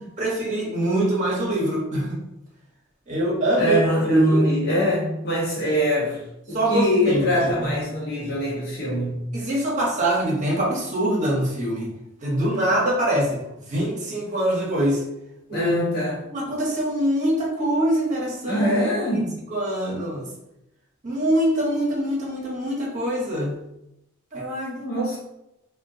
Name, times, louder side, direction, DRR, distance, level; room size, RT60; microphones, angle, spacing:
voice 1, 0.2-2.3 3.1-4.5 6.5-7.7 9.3-11.9 12.2-13.4 13.7-15.0 15.5-15.7 16.3-18.7 19.1-19.2 19.5-20.3 21.0-23.6 24.3-24.8, right 1 dB, 40° right, -4 dB, 0.9 m, -24 dB
voice 2, 3.6-9.3 15.5-16.3 18.5-19.3 24.8-25.2, equal, 50° left, -5 dB, 1.1 m, -23 dB
3.6 x 2.2 x 2.7 m, 0.88 s
head